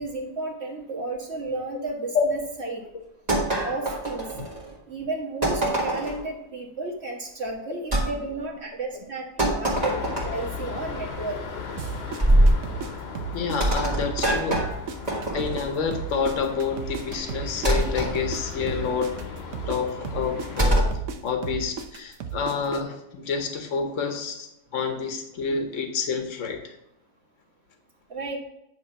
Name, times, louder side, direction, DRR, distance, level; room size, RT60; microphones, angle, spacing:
voice 1, 0.0-2.8 3.6-4.4 4.9-11.6 28.1-28.4, right 2 dB, 60° right, -1 dB, 1.8 m, -33 dB
sound 1, 3.3-4.7 5.4-6.2 7.9-8.1 9.4-10.5 12.2-12.6 13.6-15.7 17.6-18.1 20.6-21.0, right 1 dB, 35° right, 2.0 m, -23 dB
sound 2, 9.7-20.7, left 5 dB, 60° left, 1.2 m, -37 dB
sound 3, 11.8-14.3 14.5-18.4 18.7-22.8, right 6 dB, 85° right, 1.1 m, -34 dB
voice 2, 13.3-14.6 15.3-19.1 19.7-20.8 21.2-26.7, left 5 dB, 80° left, 5 dB, 1.3 m, -28 dB
9.4 x 3.3 x 5.9 m, 0.83 s
omnidirectional pair, 1.3 m